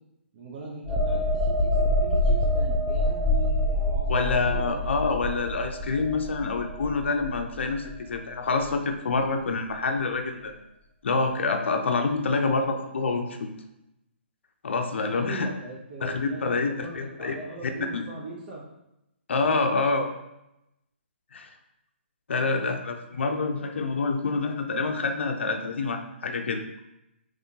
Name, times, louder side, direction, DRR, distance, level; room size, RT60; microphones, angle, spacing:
voice 1, 0.3-4.9 15.1-18.6, right 2 dB, 45° right, -3 dB, 0.8 m, -40 dB
sound 1, 0.9-8.3 8.7-8.9, left 1 dB, ahead, 0.5 m, -26 dB
voice 2, 4.1-10.6 11.0-13.5 14.6-15.5 16.0-17.4 17.9-18.0 19.3-20.1 21.3-21.5 22.3-26.6, left 3 dB, 70° left, 5 dB, 0.5 m, -27 dB
3.5 x 3.2 x 2.7 m, 0.87 s
figure-of-eight pair, 140°, 7 cm